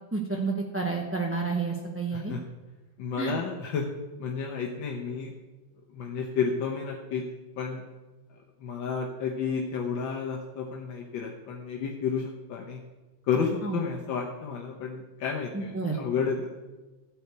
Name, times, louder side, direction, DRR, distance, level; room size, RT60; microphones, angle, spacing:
voice 1, 0.1-2.3 3.2-3.3 13.6-13.8 15.5-16.0, right 4 dB, 15° right, 0 dB, 0.4 m, -30 dB
voice 2, 2.1-2.4 3.0-3.9 4.2-5.3 5.9-7.2 7.6-7.8 8.6-12.8 13.2-16.5, left 6 dB, 80° left, 0 dB, 1.7 m, -31 dB
13.5 x 4.6 x 8.1 m, 1.2 s
omnidirectional pair, 2.1 m